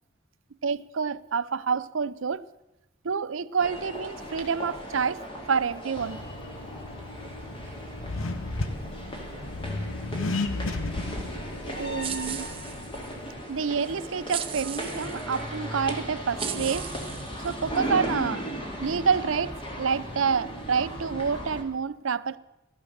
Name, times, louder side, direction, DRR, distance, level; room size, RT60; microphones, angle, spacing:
voice 1, 0.6-2.4 3.0-6.2 11.8-12.5 13.5-16.9 17.4-18.5 18.8-22.4, right 6 dB, 80° right, 0.6 m, -28 dB
sound 1, 3.6-21.6, equal, 25° left, 2.5 m, -37 dB
Accelerating revving vroom, 6.0-13.3, left 2 dB, 90° left, 1.3 m, -34 dB
sound 2, 12.0-13.1 14.3-15.2 15.9-16.0 16.4-17.8, right 9 dB, 25° right, 0.8 m, -36 dB
15.5 x 13.0 x 6.7 m
head